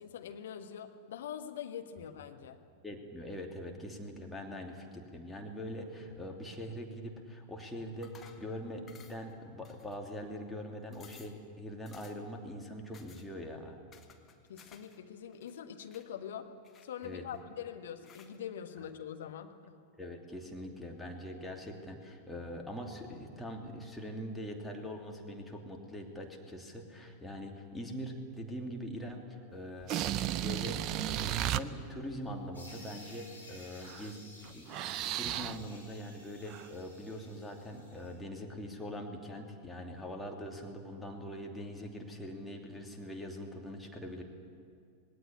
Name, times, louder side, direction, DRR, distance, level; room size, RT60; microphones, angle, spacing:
voice 1, 0.0-2.6 14.5-16.5 16.8-19.8, left 9 dB, 60° left, 6 dB, 1.4 m, -44 dB
voice 2, 2.8-13.8 17.0-17.2 20.0-30.8 31.1-34.2 34.5-34.7 35.1-44.2, equal, 5° left, 1 dB, 2.9 m, -43 dB
sound 1, 8.0-8.5 8.9-9.3 9.6-10.3 10.6-10.7 10.9-11.4 11.9-12.3 12.9-13.3 13.9-15.0 15.3-16.1 16.6-17.4 18.0-18.4, left 7 dB, 25° left, 1.8 m, -58 dB
sound 2, 29.8-31.6 33.9-34.1 34.4-35.7 36.5-36.7, right 12 dB, 40° right, 0.7 m, -34 dB
sound 3, 32.5-38.1, left 2 dB, 80° left, 7.0 m, -55 dB
20.0 x 17.5 x 9.9 m, 2.4 s
figure-of-eight pair, 90°, 0 cm